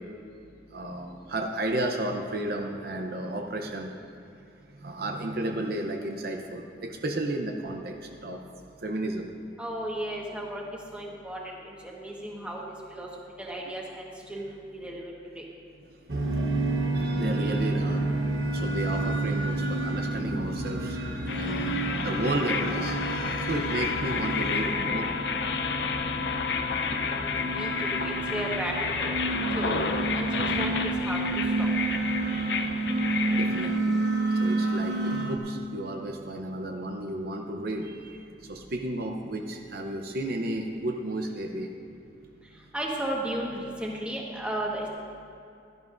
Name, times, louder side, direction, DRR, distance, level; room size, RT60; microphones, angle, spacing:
voice 1, 0.7-3.9 4.8-7.9 8.2-8.4 8.8-9.2 16.9-18.0 18.5-25.1 32.3-32.7 33.3-34.0 34.4-38.2 38.5-41.7, right 1 dB, 55° right, 3 dB, 0.7 m, -33 dB
voice 2, 9.6-10.6 10.9-12.6 12.9-13.1 13.4-15.4 27.0-29.2 29.5-29.8 30.1-31.7 42.7-44.9, right 1 dB, 5° right, -2 dB, 1.3 m, -35 dB
sound 1, 16.1-35.4, right 2 dB, 70° right, 1.1 m, -29 dB
sound 2, 21.3-33.8, left 5 dB, 65° left, 0.6 m, -31 dB
16.0 x 12.0 x 2.6 m, 2.7 s
head